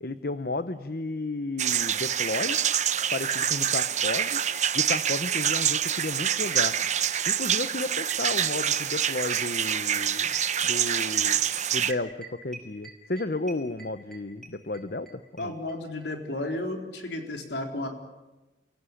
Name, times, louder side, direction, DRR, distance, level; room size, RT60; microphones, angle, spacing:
voice 1, 0.0-2.6 3.1-4.4 4.7-6.8 7.3-11.4 11.7-15.5, left 2 dB, 50° left, 11 dB, 0.9 m, -33 dB
sound 1, 1.6-11.9, right 9 dB, 40° right, 1.0 m, -26 dB
sound 2, 4.0-5.6 5.9-15.1 15.4-15.5 15.7-15.8 16.0-16.1, right 2 dB, 5° left, 5.8 m, -45 dB
voice 2, 15.4-17.9, left 1 dB, 70° left, 3 dB, 4.1 m, -33 dB
29.5 x 17.0 x 10.0 m, 1.1 s
head